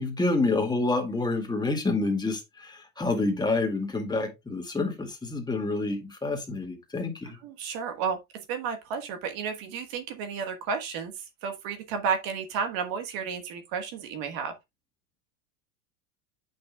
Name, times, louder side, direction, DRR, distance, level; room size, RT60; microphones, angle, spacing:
voice 1, 0.0-7.4, left 3 dB, 10° left, 2.0 m, -28 dB
voice 2, 7.4-14.5, right 6 dB, 55° right, 1.5 m, -32 dB
8.4 x 6.5 x 2.3 m
supercardioid pair, 120°, 42 cm